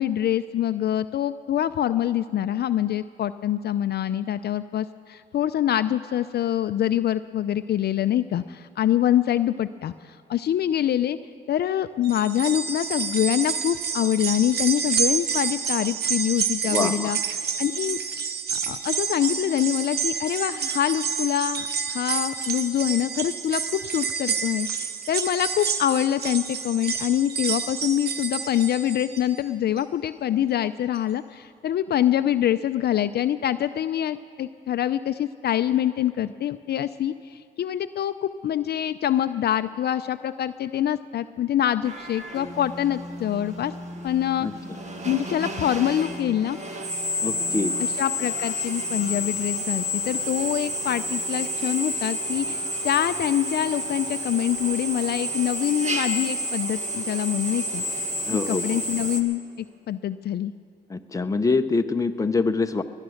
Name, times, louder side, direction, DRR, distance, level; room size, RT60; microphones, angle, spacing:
voice 1, 0.0-11.2 11.5-18.0 18.5-43.7 44.0-44.5 45.0-46.6 48.0-57.8 58.5-60.5, left 11 dB, 55° left, 12 dB, 0.5 m, -25 dB
sound 1, 12.0-29.4 29.8-29.9 31.0-31.1, right 6 dB, 55° right, 1.1 m, -29 dB
voice 2, 16.6-17.1 44.4-44.5 47.2-47.7 58.2-58.8 60.9-62.8, left 3 dB, 15° left, 8 dB, 0.7 m, -25 dB
Drill, 41.8-59.2, equal, 35° right, 1.6 m, -30 dB
20.5 x 10.5 x 6.4 m, 2.1 s
cardioid pair, 90°, 20 cm